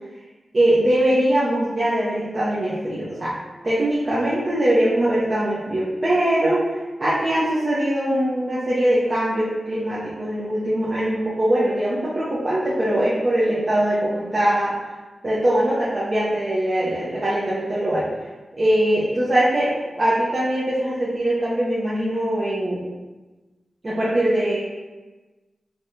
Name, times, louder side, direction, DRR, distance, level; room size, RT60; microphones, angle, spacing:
voice 1, 0.5-3.3 3.6-14.8 15.2-18.1 18.6-22.8 23.8-24.6, right 1 dB, 50° right, -8 dB, 0.8 m, -21 dB
3.3 x 3.3 x 2.8 m, 1.2 s
cardioid pair, 40°, 0 cm